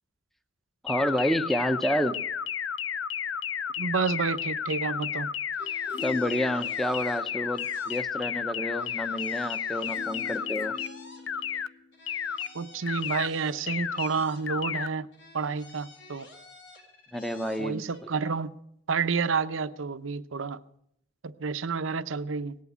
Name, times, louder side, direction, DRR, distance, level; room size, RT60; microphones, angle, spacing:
voice 1, 0.8-2.2 6.0-10.7 17.1-17.9, equal, ahead, 0.7 m, -29 dB
sound 1, 0.9-10.9 11.3-11.7 12.1-12.5 12.9-13.3 13.7-14.1 14.5-14.9, left 8 dB, 80° left, 0.6 m, -32 dB
voice 2, 3.8-5.3 12.5-15.1 15.3-16.3 17.6-18.5 18.9-20.6 21.2-22.6, right 5 dB, 90° right, 0.7 m, -29 dB
sound 2, 5.5-8.4 8.7-11.6 11.9-14.8 15.1-18.0, left 2 dB, 65° left, 3.5 m, -51 dB
sound 3, 5.6-7.9 9.9-12.0 12.5-12.6, left 5 dB, 25° left, 1.7 m, -43 dB
18.5 x 8.4 x 9.2 m
head